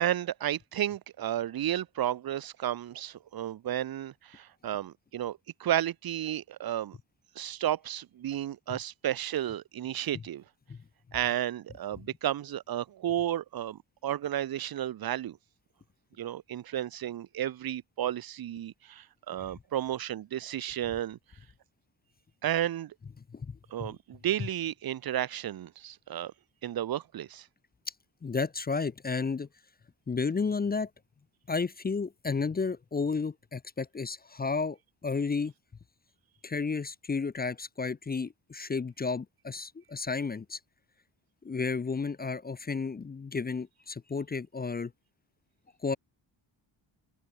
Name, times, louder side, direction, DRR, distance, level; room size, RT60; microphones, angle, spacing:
voice 1, 0.0-7.0 7.4-10.4 11.1-15.4 16.2-21.2 22.4-22.9 23.7-26.3 26.6-27.5, right 11 dB, 50° right, 0.6 m, -32 dB
voice 2, 23.3-24.0 28.2-29.5 30.1-30.9 31.5-34.8 35.0-35.5 36.4-40.6 41.4-44.9 45.8-46.0, left 4 dB, 20° left, 0.4 m, -32 dB
open air
cardioid pair, 80°, 48 cm